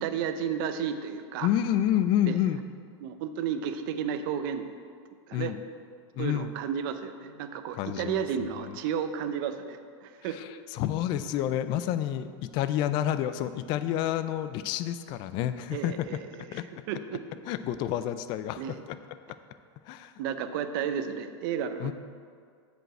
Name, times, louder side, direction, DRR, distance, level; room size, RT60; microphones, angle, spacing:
voice 1, 0.0-1.5 2.3-2.4 3.0-4.7 5.3-5.5 6.2-10.4 15.7-16.5 16.9-17.2 18.6-18.8 20.2-21.9, right 8 dB, 50° right, 9 dB, 0.7 m, -32 dB
voice 2, 1.4-2.7 5.3-5.6 6.1-6.5 7.7-8.6 10.3-15.9 16.5-16.7 17.5-18.6 18.9-19.0 19.9-20.1 21.8-21.9, left 11 dB, 30° left, 12 dB, 0.3 m, -29 dB
7.9 x 5.2 x 7.6 m, 2.1 s
supercardioid pair, 150°, 15 cm